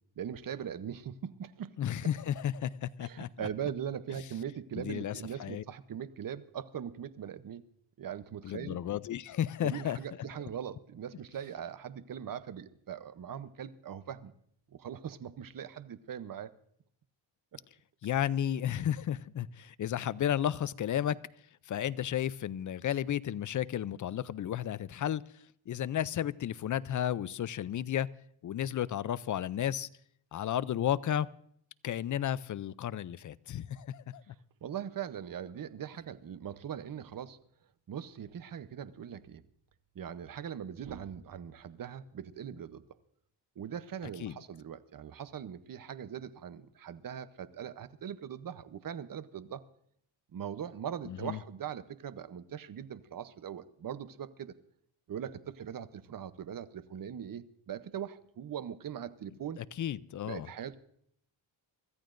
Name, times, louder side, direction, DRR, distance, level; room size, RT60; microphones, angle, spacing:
voice 1, 0.2-1.7 3.0-7.7 8.0-8.8 9.6-14.3 14.7-16.5 17.5-17.6 34.6-37.4 37.9-39.4 39.9-42.8 43.6-49.6 50.3-54.5 55.1-59.6 60.3-60.8, right 9 dB, 40° right, 0.8 m, -41 dB
voice 2, 1.8-3.5 4.8-5.6 8.4-10.0 18.0-21.2 21.6-28.1 28.4-29.9 30.3-31.3 31.8-34.4 44.2-44.4 51.0-51.4 59.6-60.5, left 10 dB, 40° left, 0.4 m, -33 dB
24.5 x 14.0 x 2.5 m
cardioid pair, 115°, 50 cm